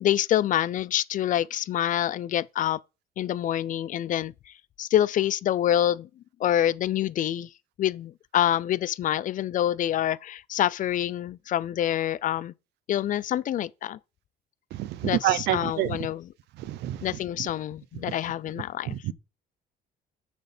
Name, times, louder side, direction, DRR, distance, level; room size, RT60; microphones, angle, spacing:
voice 1, 0.0-2.8 3.2-4.3 4.8-6.1 6.4-7.5 7.8-12.5 12.9-14.0 15.0-16.3 17.0-19.0, left 11 dB, 50° left, 0.5 m, -26 dB
voice 2, 14.8-15.9 16.7-17.0 19.0-19.1, right 14 dB, 80° right, 0.7 m, -26 dB
6.6 x 6.0 x 4.4 m
cardioid pair, 110°, 17 cm